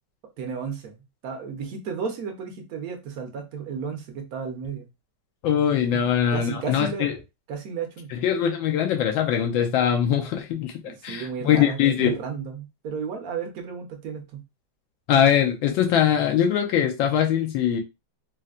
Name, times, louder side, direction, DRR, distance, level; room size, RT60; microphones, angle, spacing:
voice 1, 0.4-4.9 5.9-6.0 6.3-7.1 7.5-8.2 10.8-14.4, right 6 dB, 60° right, 4 dB, 1.1 m, -33 dB
voice 2, 5.4-7.1 8.1-10.7 11.0-12.1 15.1-17.8, left 9 dB, 90° left, 3 dB, 1.4 m, -22 dB
4.1 x 2.1 x 2.4 m, 0.24 s
omnidirectional pair, 2.0 m